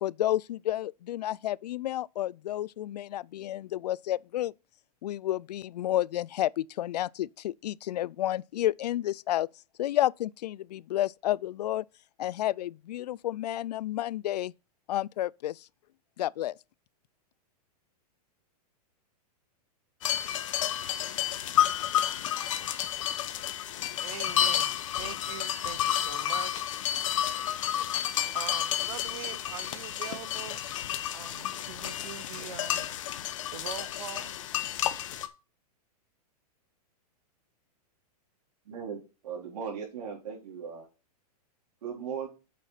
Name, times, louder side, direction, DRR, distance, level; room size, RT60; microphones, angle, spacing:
voice 1, 0.0-4.5 5.0-9.5 9.8-11.8 12.2-14.5 14.9-15.7 16.2-16.5, left 13 dB, 90° left, 0.4 m, -31 dB
sound 1, 20.0-35.3, left 11 dB, 55° left, 1.1 m, -31 dB
voice 2, 24.0-26.6 28.3-30.7 31.1-32.9 33.5-34.4, right 10 dB, 60° right, 1.0 m, -42 dB
voice 3, 38.6-39.0 39.2-40.9 41.8-42.3, right 7 dB, 75° right, 4.1 m, -37 dB
8.3 x 6.5 x 5.8 m
supercardioid pair, 175°, 20 cm